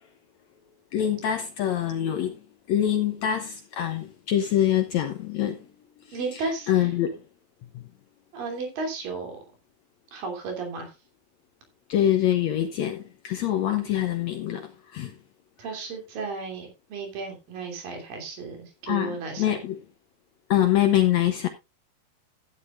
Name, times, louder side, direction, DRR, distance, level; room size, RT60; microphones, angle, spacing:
voice 1, 0.9-5.7 6.0-7.2 7.7-7.9 11.9-15.1 18.9-19.8 20.5-21.5, left 11 dB, 75° left, 1.6 m, -25 dB
voice 2, 6.1-6.9 8.3-9.4 10.1-10.9 15.6-19.6, right 3 dB, 70° right, 4.7 m, -34 dB
13.5 x 11.0 x 2.5 m
omnidirectional pair, 4.2 m